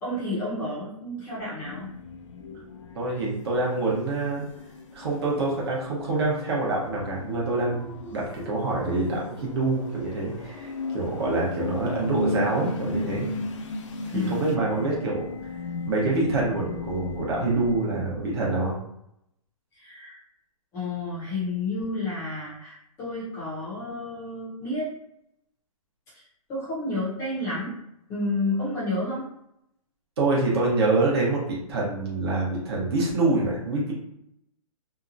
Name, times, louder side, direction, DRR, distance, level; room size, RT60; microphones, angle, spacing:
voice 1, 0.0-1.9 14.1-15.0 19.7-20.2 20.7-24.9 26.1-26.2 26.5-27.7 28.1-29.2, left 2 dB, 15° left, -8 dB, 0.7 m, -30 dB
sound 1, 1.6-17.9, left 3 dB, 55° left, 0.4 m, -36 dB
voice 2, 2.9-4.4 4.9-7.8 8.1-13.3 14.1-15.3 15.9-18.8 30.2-33.9, right 2 dB, 45° right, -4 dB, 1.0 m, -26 dB
2.9 x 2.3 x 2.5 m, 0.79 s
hypercardioid pair, 165°, 19 cm